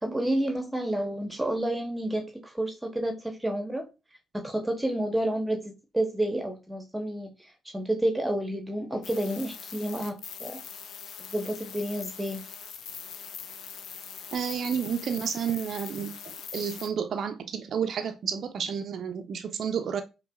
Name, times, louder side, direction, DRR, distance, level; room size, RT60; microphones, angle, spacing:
voice 1, 0.0-3.9 4.3-10.6 11.3-12.4, right 1 dB, 10° right, 0.8 m, -30 dB
sound 1, 9.0-16.9, left 7 dB, 65° left, 0.4 m, -42 dB
voice 2, 14.3-20.0, right 7 dB, 55° right, 0.3 m, -31 dB
5.2 x 2.0 x 2.2 m
hypercardioid pair, 40°, 0 cm